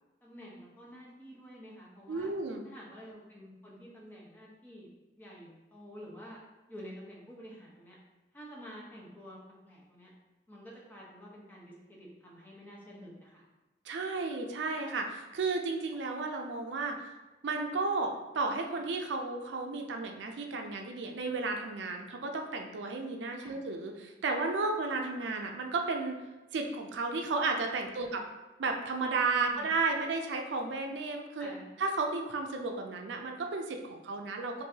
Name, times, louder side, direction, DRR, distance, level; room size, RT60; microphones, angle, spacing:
voice 1, 0.2-2.3 2.6-4.9 5.2-6.4 6.7-8.0 8.3-9.4 9.6-10.1 10.5-13.4 23.4-23.6 28.0-28.2 29.5-29.7 31.4-31.7, equal, 10° left, -5 dB, 0.9 m, -49 dB
voice 2, 2.1-2.6 13.9-17.0 17.4-26.2 26.5-28.2 28.6-31.5 31.8-34.6, right 3 dB, 80° right, 3 dB, 0.4 m, -33 dB
4.6 x 2.6 x 2.7 m, 1.1 s
head